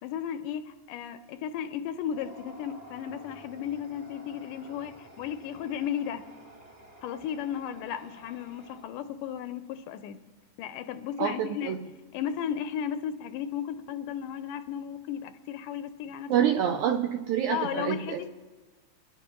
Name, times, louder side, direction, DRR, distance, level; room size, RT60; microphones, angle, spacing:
voice 1, 0.0-6.2 7.0-10.2 10.6-11.8 12.1-16.3 17.5-18.3, left 9 dB, 80° left, 10 dB, 2.0 m, -34 dB
sound 1, 2.0-9.2, right 1 dB, 25° right, 0.9 m, -51 dB
voice 2, 11.2-11.8 16.3-18.3, right 9 dB, 85° right, 6 dB, 1.7 m, -27 dB
22.5 x 12.0 x 3.0 m, 1.4 s
omnidirectional pair, 4.0 m